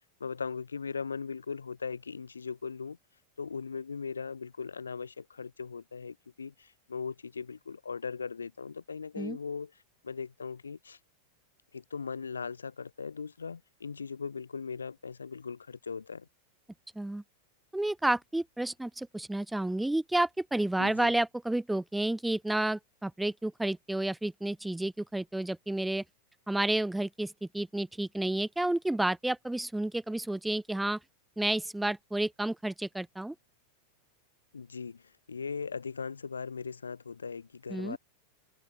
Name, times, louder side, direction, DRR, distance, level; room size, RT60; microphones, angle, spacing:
voice 1, 0.2-3.0 3.4-9.7 10.0-11.0 11.7-16.2 20.8-21.1 34.5-38.0, left 5 dB, 75° left, 1.4 m, -39 dB
voice 2, 17.7-26.0 26.5-31.0 31.4-33.3 37.7-38.0, right 1 dB, 5° right, 0.9 m, -31 dB
open air
figure-of-eight pair, 90°, 0 cm